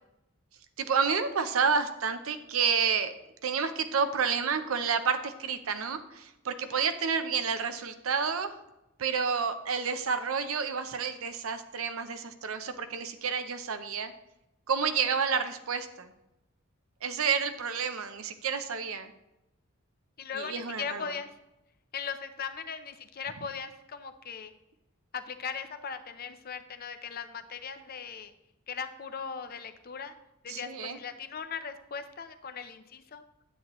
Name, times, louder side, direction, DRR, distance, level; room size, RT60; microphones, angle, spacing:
voice 1, 0.8-3.1 3.4-8.5 9.0-14.1 14.7-16.1 17.0-19.1 20.3-21.1 30.5-31.0, right 6 dB, 80° right, 9 dB, 0.7 m, -30 dB
voice 2, 20.2-21.3 21.9-24.5 25.1-28.3 28.7-30.1 30.4-33.2, left 6 dB, 45° left, 9 dB, 0.6 m, -39 dB
9.9 x 7.7 x 3.0 m, 0.91 s
head